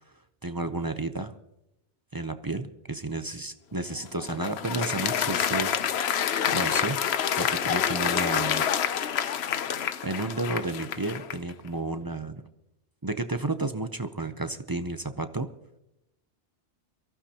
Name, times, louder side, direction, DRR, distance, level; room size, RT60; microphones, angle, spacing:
voice 1, 0.4-1.3 2.1-7.0 7.4-8.6 10.0-12.3 13.0-15.5, right 2 dB, 25° right, 9 dB, 0.5 m, -32 dB
Applause, 3.9-11.5, left 8 dB, 70° left, 0.9 m, -28 dB
23.0 x 14.5 x 2.9 m, 0.87 s
omnidirectional pair, 1.2 m